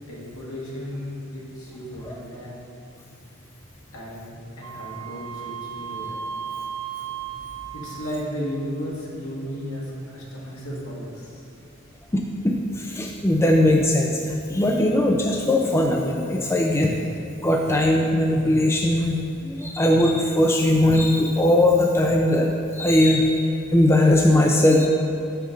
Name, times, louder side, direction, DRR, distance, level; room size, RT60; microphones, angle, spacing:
voice 1, 0.1-2.7 3.9-6.2 7.7-11.5, equal, 80° left, -4 dB, 1.7 m, -34 dB
Wind instrument woodwind instrument, 4.6-8.5, right 8 dB, 65° right, 0.4 m, -35 dB
voice 2, 12.1-16.9 17.4-23.4 23.7-24.9, left 1 dB, 10° left, 0 dB, 0.3 m, -20 dB
5.6 x 4.9 x 6.2 m, 2.7 s
head